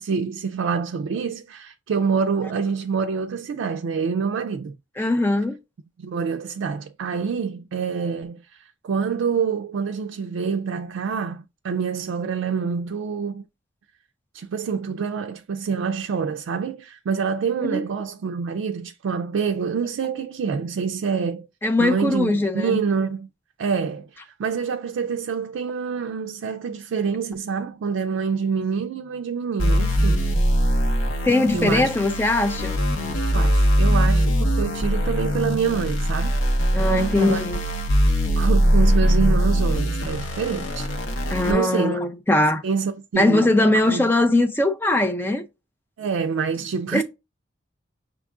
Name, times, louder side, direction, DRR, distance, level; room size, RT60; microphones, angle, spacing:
voice 1, 0.0-5.1 6.0-13.5 14.3-21.5 21.8-23.3 23.6-30.3 31.5-31.9 33.0-36.4 36.9-37.4 38.4-40.9 41.5-42.0 42.6-43.5 43.9-44.1 46.0-47.0, right 6 dB, 80° right, 0.4 m, -26 dB
voice 2, 5.0-5.6 17.6-17.8 21.6-22.8 31.2-32.7 36.7-37.6 41.3-42.6 43.1-45.4 46.9-47.0, left 2 dB, 10° left, 0.4 m, -20 dB
sound 1, 29.6-41.5, equal, 90° left, 0.8 m, -21 dB
5.8 x 2.4 x 3.6 m
head